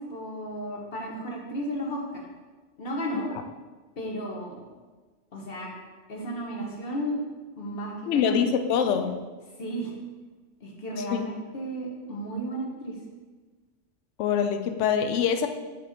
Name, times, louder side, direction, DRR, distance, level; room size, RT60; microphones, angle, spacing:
voice 1, 0.0-2.2 2.8-3.3 4.0-4.6 5.3-5.7 6.1-7.2 7.6-8.3 9.6-9.9 10.6-13.0, equal, 50° left, -1 dB, 1.4 m, -33 dB
voice 2, 8.1-9.2 11.1-11.3 14.2-15.5, left 7 dB, 75° left, 8 dB, 0.9 m, -24 dB
5.7 x 3.9 x 5.8 m, 1.3 s
omnidirectional pair, 1.2 m